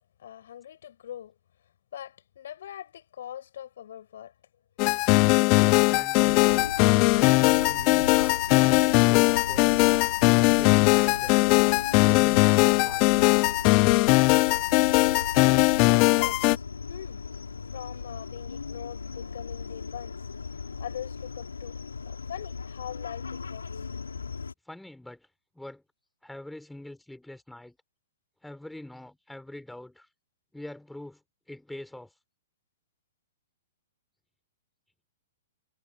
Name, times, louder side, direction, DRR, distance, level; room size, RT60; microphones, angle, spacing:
voice 1, 0.2-1.3 1.9-4.3 15.8-17.3 17.7-20.2 20.8-21.8 22.1-24.2, left 10 dB, 65° left, 6.7 m, -42 dB
sound 1, 4.8-16.6, left 28 dB, 40° left, 0.5 m, -20 dB
voice 2, 5.5-6.7 7.1-9.9 10.6-11.5 11.9-13.0 24.7-25.3 25.5-25.8 26.2-27.8 28.4-30.1 30.5-31.2 31.5-32.1, left 1 dB, 5° left, 5.2 m, -43 dB
sound 2, 6.1-24.5, left 5 dB, 85° left, 6.2 m, -38 dB
hypercardioid pair, 120°, 0 cm